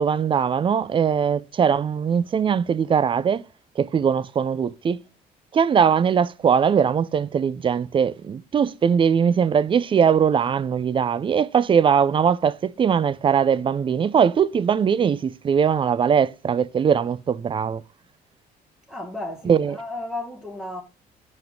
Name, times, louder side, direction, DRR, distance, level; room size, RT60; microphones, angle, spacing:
voice 1, 0.0-3.4 3.8-5.0 5.5-17.8 19.5-19.7, right 7 dB, 30° right, 0.5 m, -21 dB
voice 2, 18.9-20.8, left 2 dB, 5° right, 1.6 m, -33 dB
5.8 x 5.4 x 6.3 m
cardioid pair, 110°, 17 cm